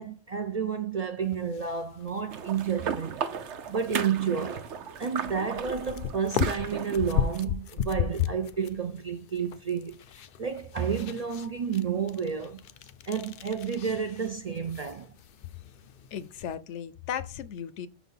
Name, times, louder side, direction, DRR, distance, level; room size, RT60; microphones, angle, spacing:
voice 1, 0.0-3.2 3.7-4.7 5.0-10.0 10.4-12.6 13.1-15.1, right 7 dB, 50° right, 0.4 m, -30 dB
sound 1, 1.2-16.5, left 8 dB, 60° left, 0.6 m, -37 dB
sound 2, 2.3-7.4, right 7 dB, 75° right, 1.0 m, -35 dB
voice 2, 16.1-17.9, left 9 dB, 85° left, 0.9 m, -36 dB
6.1 x 4.1 x 5.5 m
omnidirectional pair, 1.2 m